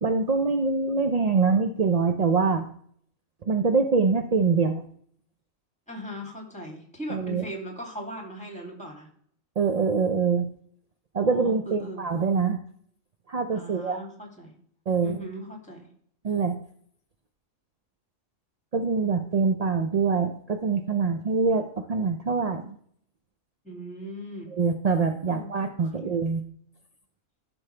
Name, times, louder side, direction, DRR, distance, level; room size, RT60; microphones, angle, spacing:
voice 1, 0.0-2.6 3.4-4.8 7.1-7.4 9.6-10.5 11.1-12.6 13.3-14.0 14.9-15.2 16.2-16.6 18.7-22.8 24.5-26.4, right 4 dB, 45° right, 6 dB, 0.5 m, -24 dB
voice 2, 5.9-9.1 11.2-12.1 13.5-14.6 15.0-15.9 23.6-24.6 25.3-26.2, equal, 5° left, 1 dB, 2.6 m, -39 dB
14.0 x 6.3 x 3.3 m, 0.62 s
omnidirectional pair, 1.4 m